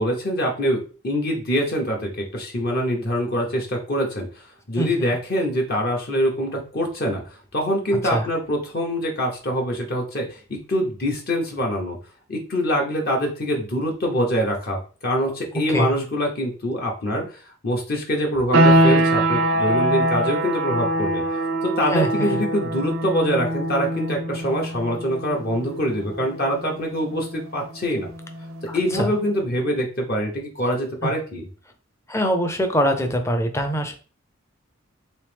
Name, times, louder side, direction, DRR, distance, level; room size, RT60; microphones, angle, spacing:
voice 1, 0.0-12.0 12.3-21.2 21.6-28.1 28.7-31.5, equal, 45° left, 0 dB, 0.8 m, -24 dB
voice 2, 4.8-5.2 8.0-8.3 15.2-15.3 15.7-15.9 21.9-22.4 28.7-29.1 31.0-31.1 32.1-34.0, equal, 15° left, 6 dB, 0.5 m, -24 dB
sound 1, 18.5-29.0, right 1 dB, 60° right, 0.5 m, -23 dB
3.3 x 3.1 x 3.3 m, 0.38 s
head